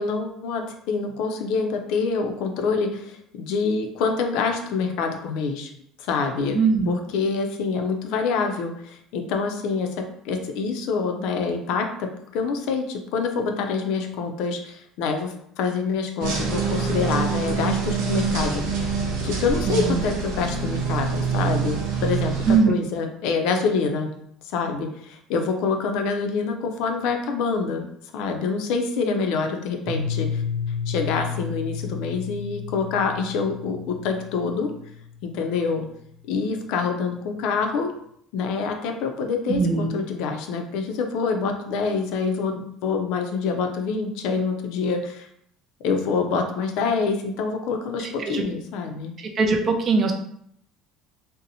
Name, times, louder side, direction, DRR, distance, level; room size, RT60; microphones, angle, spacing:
voice 1, 0.0-5.7 6.0-6.6 6.9-18.9 19.2-24.1 24.5-27.9 28.1-30.4 30.9-34.7 35.2-35.8 36.3-37.9 38.3-45.3 45.8-49.1, left 5 dB, 70° left, 5 dB, 0.4 m, -26 dB
voice 2, 6.5-6.9 19.7-20.0 22.5-22.7 39.5-39.9 48.2-48.4 49.4-50.1, right 4 dB, 35° right, 4 dB, 0.3 m, -20 dB
sound 1, 16.2-22.6, right 5 dB, 85° right, 0.6 m, -25 dB
Piano, 29.9-35.5, left 6 dB, 50° right, 0.8 m, -32 dB
2.6 x 2.0 x 2.7 m, 0.70 s
cardioid pair, 145°, 0 cm